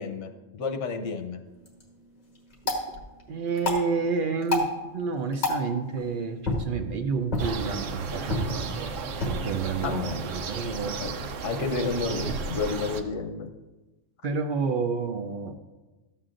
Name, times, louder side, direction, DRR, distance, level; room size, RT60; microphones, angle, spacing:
voice 1, 0.0-1.4 9.8-10.2 11.0-11.1 11.4-13.5, left 4 dB, 75° left, 6 dB, 1.1 m, -30 dB
sound 1, 1.5-11.5, left 2 dB, 35° left, 1.4 m, -34 dB
voice 2, 3.3-4.7 4.9-8.9 9.3-11.0 14.2-15.5, right 5 dB, 60° right, 6 dB, 0.6 m, -29 dB
sound 2, 7.4-13.0, right 4 dB, 85° right, 1.0 m, -34 dB
12.5 x 7.6 x 2.5 m, 1.1 s
omnidirectional pair, 1.3 m